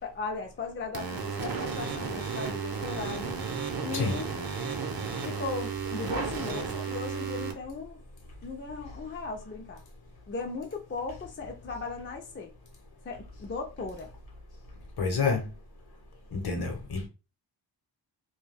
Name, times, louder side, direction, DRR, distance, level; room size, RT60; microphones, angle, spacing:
voice 1, 0.0-3.4 3.8-4.3 5.2-8.0 8.4-9.8 10.3-12.5 13.0-14.1, left 4 dB, 30° left, 0.4 m, -37 dB
sound 1, 0.9-7.5, right 5 dB, 55° right, 0.7 m, -33 dB
voice 2, 15.0-15.5 16.3-17.1, left 4 dB, 60° left, 0.9 m, -28 dB
2.3 x 2.2 x 3.3 m
wide cardioid pair, 105°, 43 cm